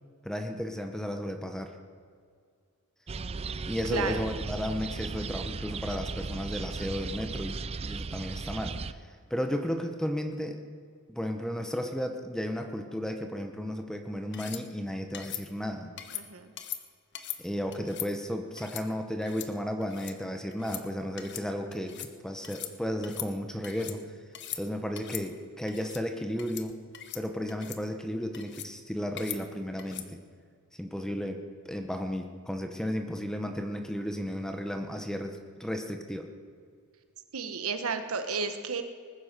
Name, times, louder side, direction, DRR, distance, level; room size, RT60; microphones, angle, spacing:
voice 1, 0.2-1.7 3.7-9.0 9.3-10.6 11.1-15.9 17.4-24.0 24.5-26.7 27.1-30.2 30.8-36.3, equal, 5° left, 5 dB, 0.9 m, -34 dB
sound 1, 3.1-8.9, right 4 dB, 25° right, 0.4 m, -36 dB
voice 2, 3.9-4.2 16.1-16.5 37.3-38.8, right 4 dB, 70° right, 8 dB, 1.2 m, -32 dB
sound 2, 14.3-14.6 15.1-15.4 16.0-16.2 16.6-16.8 17.1-17.4 17.7-18.1 18.6-18.8 19.2-19.5 19.8-20.1 20.5-20.8 21.2-21.5 21.7-22.1 22.4-22.7 23.0-24.0 24.3-24.6 25.0-25.2 25.7-26.0 26.4-26.7 26.9-27.2 27.5-27.8 28.3-28.7 29.2-29.4 29.8-30.1, left 11 dB, 55° left, 1.0 m, -40 dB
20.0 x 9.8 x 6.7 m, 2.1 s
head